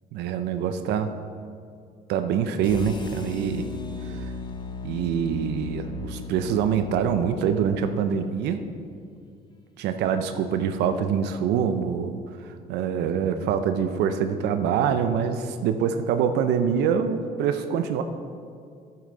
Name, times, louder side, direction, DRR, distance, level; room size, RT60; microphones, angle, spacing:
voice 1, 0.1-1.1 2.1-3.6 4.1-4.3 4.8-8.6 9.8-12.2 12.7-18.0, right 7 dB, 85° right, 8 dB, 0.6 m, -25 dB
sound 1, 2.6-8.8, left 3 dB, 25° left, 0.9 m, -37 dB
10.5 x 8.6 x 3.9 m, 2.3 s
cardioid pair, 110°, 17 cm